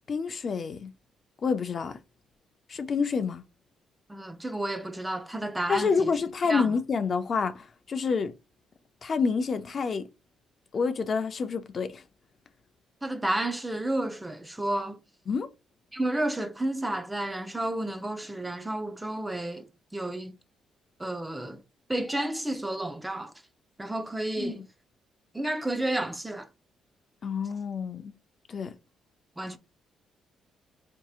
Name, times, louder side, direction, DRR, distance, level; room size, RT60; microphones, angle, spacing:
voice 1, 0.1-0.9 1.4-2.0 2.7-3.4 5.7-8.3 9.0-10.1 10.7-12.0 15.3-15.5 24.4-24.6 27.2-28.1 28.5-28.7, left 5 dB, 45° left, 0.5 m, -28 dB
voice 2, 4.1-6.1 6.5-6.7 13.0-15.0 15.9-20.4 21.0-21.6 21.9-23.3 23.8-24.6 25.3-26.5 29.4-29.6, right 1 dB, 10° right, 0.5 m, -31 dB
4.5 x 2.8 x 2.4 m
cardioid pair, 90°, 0 cm